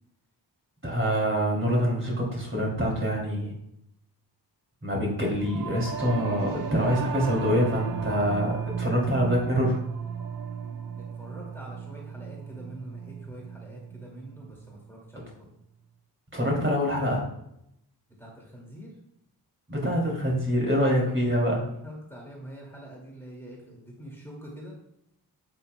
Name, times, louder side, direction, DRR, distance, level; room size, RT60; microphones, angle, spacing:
voice 1, 0.8-3.5 4.8-9.8 16.3-17.3 19.7-21.6, equal, 30° right, -2 dB, 2.9 m, -25 dB
Singing / Musical instrument, 5.4-15.0, right 7 dB, 80° right, 1.3 m, -35 dB
voice 2, 11.0-15.5 16.3-16.6 18.2-18.9 21.5-24.7, equal, 5° left, -3 dB, 2.3 m, -45 dB
8.7 x 8.4 x 2.3 m, 0.78 s
wide cardioid pair, 95°, 41 cm